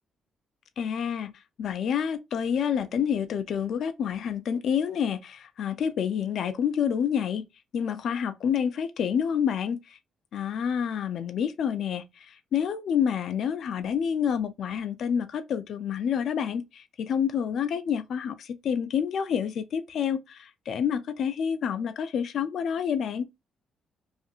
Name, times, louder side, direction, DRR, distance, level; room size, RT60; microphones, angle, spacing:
voice 1, 0.8-1.3 1.6-7.5 7.7-10.0 10.3-23.3, left 8 dB, 65° left, 0.4 m, -28 dB
2.5 x 2.4 x 2.6 m
cardioid pair, 90°, 0 cm